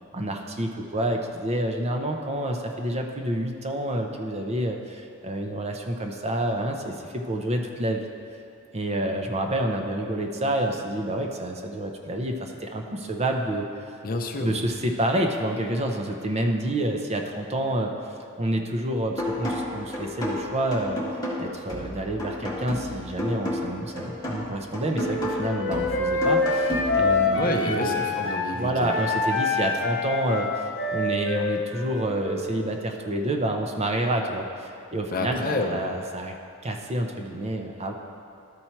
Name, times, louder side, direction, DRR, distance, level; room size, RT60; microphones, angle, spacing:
voice 1, 0.1-8.1 8.7-13.7 14.4-17.9 18.4-21.0 21.4-28.1 28.6-36.3 36.6-37.9, right 1 dB, 30° right, 3 dB, 0.6 m, -28 dB
voice 2, 14.0-14.5 27.4-28.9 35.1-35.8, left 2 dB, 40° left, 3 dB, 0.6 m, -28 dB
sound 1, 19.2-27.2, left 1 dB, 15° left, 1.6 m, -32 dB
Wind instrument woodwind instrument, 24.9-28.5 28.8-32.6, left 3 dB, 60° left, 1.2 m, -26 dB
12.5 x 4.3 x 4.5 m, 2.5 s
head